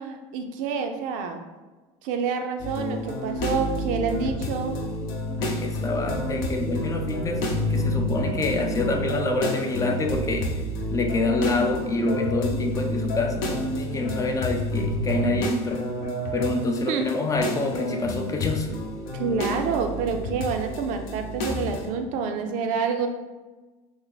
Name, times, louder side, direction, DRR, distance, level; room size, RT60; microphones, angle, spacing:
voice 1, 0.0-1.4 2.0-4.8 16.9-17.1 19.2-23.1, right 5 dB, 65° right, 5 dB, 0.5 m, -28 dB
sound 1, 2.6-21.9, left 1 dB, 70° left, 0.7 m, -29 dB
voice 2, 5.4-10.5 10.9-13.4 13.8-15.9 16.3-18.7, left 2 dB, 25° left, 3 dB, 0.4 m, -27 dB
3.3 x 2.0 x 3.9 m, 1.2 s
supercardioid pair, 120°, 14 cm